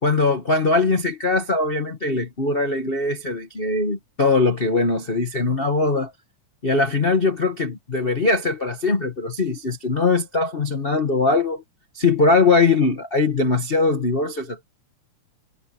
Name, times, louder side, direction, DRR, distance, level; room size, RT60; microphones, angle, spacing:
voice 1, 0.0-6.1 6.6-11.6 11.9-14.6, left 3 dB, 90° left, 0.5 m, -21 dB
omnidirectional pair, 3.5 m